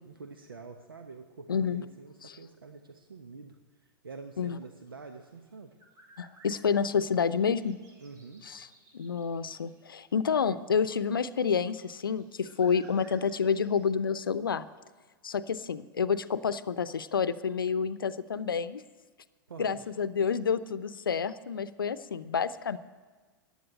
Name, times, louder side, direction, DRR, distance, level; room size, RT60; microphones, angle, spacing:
voice 1, 0.0-3.6 4.0-5.7 8.0-8.5 19.5-19.8, right 4 dB, 75° right, 6 dB, 1.1 m, -46 dB
voice 2, 1.5-1.8 2.2-2.4 4.4-4.6 6.2-7.8 8.4-8.7 8.9-14.7 15.2-18.8 19.6-22.8, left 6 dB, 70° left, 15 dB, 0.7 m, -29 dB
sound 1, 5.4-13.9, right 1 dB, 30° right, 3.9 m, -60 dB
15.5 x 10.0 x 9.0 m, 1.4 s
figure-of-eight pair, 95°, 12 cm